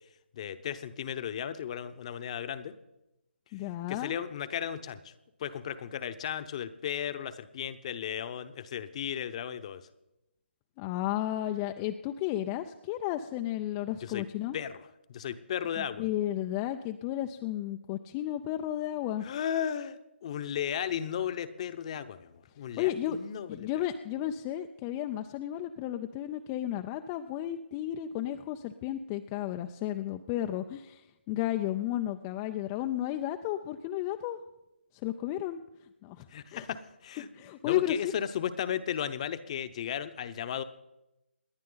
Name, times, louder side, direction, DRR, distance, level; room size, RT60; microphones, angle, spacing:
voice 1, 0.3-2.7 3.9-5.1 5.4-9.8 14.0-14.2 14.5-16.1 19.2-23.7 36.3-37.3 37.6-40.6, left 9 dB, 30° left, 12 dB, 0.8 m, -35 dB
voice 2, 3.5-4.2 10.8-14.6 15.8-19.3 22.8-23.2 23.5-31.0 31.3-34.4 35.0-35.6 36.0-36.2 36.5-36.7 37.3-38.0, left 12 dB, 15° left, 6 dB, 0.4 m, -33 dB
28.0 x 10.5 x 3.9 m, 0.95 s
figure-of-eight pair, 155°, 6 cm